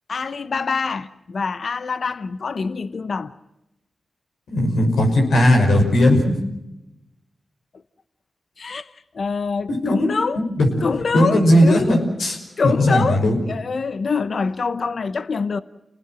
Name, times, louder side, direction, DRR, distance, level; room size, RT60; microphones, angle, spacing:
voice 1, 0.1-3.3 8.6-10.4 10.8-12.0 12.6-15.6, left 4 dB, 65° left, 0.9 m, -25 dB
voice 2, 4.5-6.3 9.7-10.1 10.5-10.7 11.1-12.4 12.6-13.4, left 1 dB, 90° left, 5.9 m, -17 dB
28.0 x 19.5 x 7.7 m
cardioid pair, 45°, 0 cm